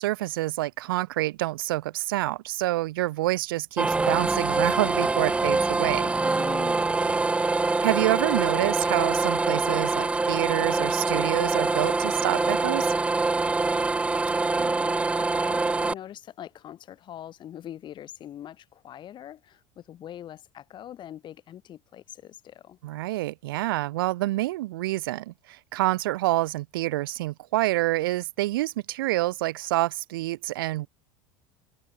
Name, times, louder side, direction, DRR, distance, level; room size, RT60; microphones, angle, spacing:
voice 1, 0.0-6.1 7.8-12.9 22.8-30.9, right 17 dB, 90° right, 1.0 m, -27 dB
sound 1, 3.8-15.9, right 3 dB, 10° right, 0.4 m, -25 dB
voice 2, 6.0-7.3 14.5-22.8, left 11 dB, 45° left, 2.5 m, -43 dB
supercardioid pair, 105°, 11 cm